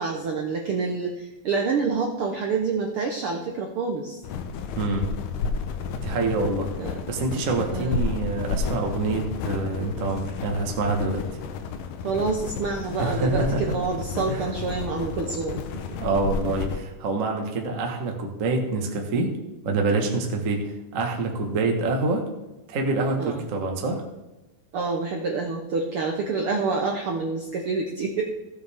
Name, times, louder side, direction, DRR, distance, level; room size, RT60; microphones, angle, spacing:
voice 1, 0.0-4.2 6.8-7.0 7.7-8.1 12.0-15.6 23.2-23.4 24.7-28.2, right 4 dB, 65° right, 1 dB, 1.4 m, -27 dB
sound 1, 4.2-16.8, left 5 dB, 90° left, 2.5 m, -31 dB
voice 2, 4.8-5.1 6.0-6.7 7.1-11.2 13.0-13.6 14.3-14.5 16.0-19.3 19.6-22.2 22.7-24.0, right 3 dB, 45° right, 2 dB, 1.0 m, -26 dB
15.5 x 7.8 x 3.5 m, 1.0 s
omnidirectional pair, 3.6 m